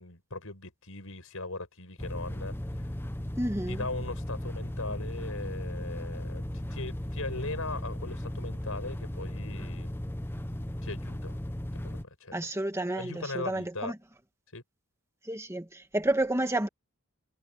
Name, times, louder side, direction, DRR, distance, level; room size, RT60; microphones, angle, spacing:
voice 1, 0.0-2.9 3.7-9.9 10.8-11.4 11.8-12.5 12.9-13.9 14.5-14.6, left 2 dB, 65° left, 7.9 m, -39 dB
sound 1, 2.0-12.0, left 1 dB, 10° left, 0.9 m, -36 dB
voice 2, 3.4-3.8 12.3-13.9 15.2-16.7, right 1 dB, 15° right, 1.8 m, -30 dB
head